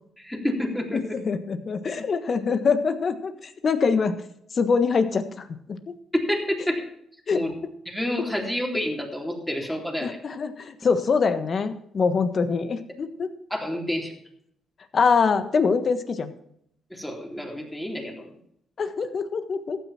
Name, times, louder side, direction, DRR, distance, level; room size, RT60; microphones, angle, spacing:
voice 1, 0.2-1.0 6.3-6.9 7.3-7.5 7.9-10.2 13.5-14.1 16.9-18.3, left 1 dB, 5° left, 0 dB, 3.6 m, -29 dB
voice 2, 0.9-4.1 4.5-5.5 7.3-7.4 10.0-13.3 14.9-16.3 18.8-19.8, left 5 dB, 45° left, 9 dB, 1.5 m, -24 dB
14.5 x 9.7 x 4.4 m, 0.71 s
cardioid pair, 90°, 0 cm